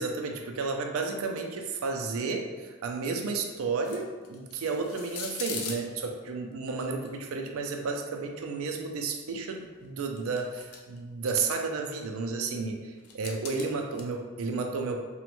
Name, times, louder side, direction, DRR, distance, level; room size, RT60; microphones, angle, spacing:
voice 1, 0.0-15.0, right 4 dB, 75° right, 3 dB, 0.4 m, -32 dB
sound 1, 3.8-5.8 6.8-7.1 9.5-9.9 10.2-11.0 11.3-11.6 13.0-14.0, left 5 dB, 85° left, 0.4 m, -40 dB
3.0 x 2.1 x 3.0 m, 1.4 s
head